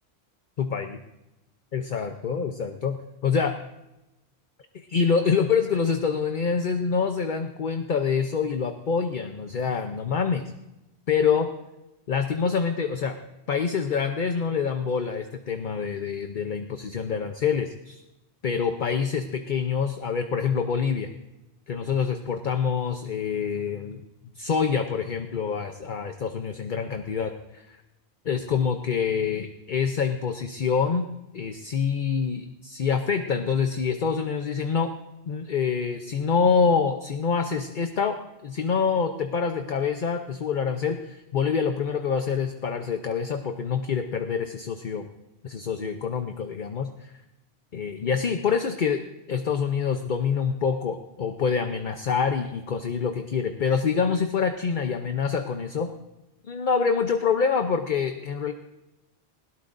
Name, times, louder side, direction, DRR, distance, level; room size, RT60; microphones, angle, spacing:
voice 1, 0.6-1.0 1.7-3.0 3.2-3.6 4.9-10.5 11.1-11.5 12.1-13.2 13.5-18.0 18.4-21.1 21.7-24.0 24.4-27.8 28.2-31.1 31.3-34.9 35.3-45.1 45.4-47.1 47.7-49.0 49.3-55.9 56.4-58.5, left 6 dB, 50° left, 6 dB, 0.9 m, -26 dB
20.0 x 17.0 x 2.6 m, 0.94 s
omnidirectional pair, 1.1 m